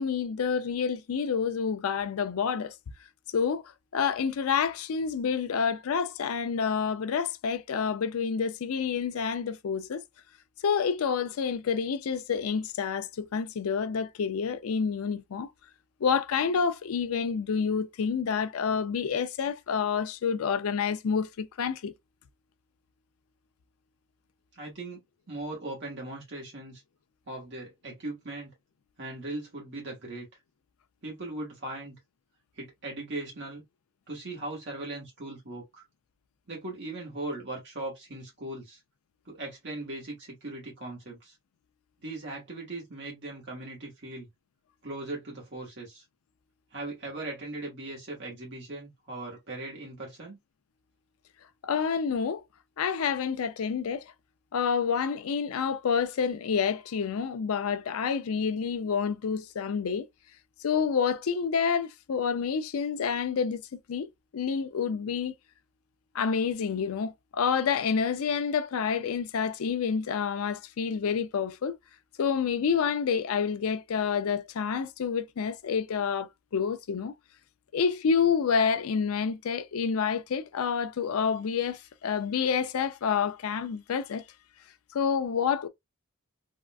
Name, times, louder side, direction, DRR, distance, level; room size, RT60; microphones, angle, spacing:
voice 1, 0.0-2.7 3.3-3.6 3.9-10.0 10.6-15.5 16.0-21.9 51.6-52.4 52.8-54.1 54.5-60.1 60.6-65.3 66.1-71.8 72.2-77.1 77.7-84.2 84.9-85.7, left 6 dB, 90° left, 0.4 m, -28 dB
voice 2, 24.5-25.0 25.3-26.8 27.3-28.5 29.0-30.3 31.0-31.9 32.6-33.6 34.1-35.8 36.5-38.8 39.2-41.3 42.0-44.3 44.8-46.0 46.7-50.4, right 2 dB, 55° right, 1.2 m, -39 dB
3.6 x 2.3 x 2.2 m
head